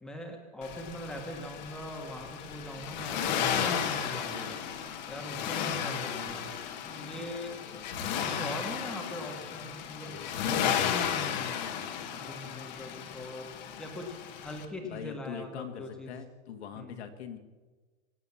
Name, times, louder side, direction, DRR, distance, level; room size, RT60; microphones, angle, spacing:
voice 1, 0.0-4.6 5.1-6.6 6.8-7.7 8.2-10.6 12.1-16.1 16.7-17.0, left 1 dB, ahead, 2 dB, 1.5 m, -42 dB
Accelerating revving vroom, 0.6-14.6, left 8 dB, 40° left, 1.3 m, -34 dB
voice 2, 6.9-7.3 8.1-9.2 10.0-11.6 14.8-17.4, left 8 dB, 65° left, 6 dB, 1.9 m, -45 dB
24.0 x 8.1 x 7.1 m, 1.3 s
supercardioid pair, 180°, 35 cm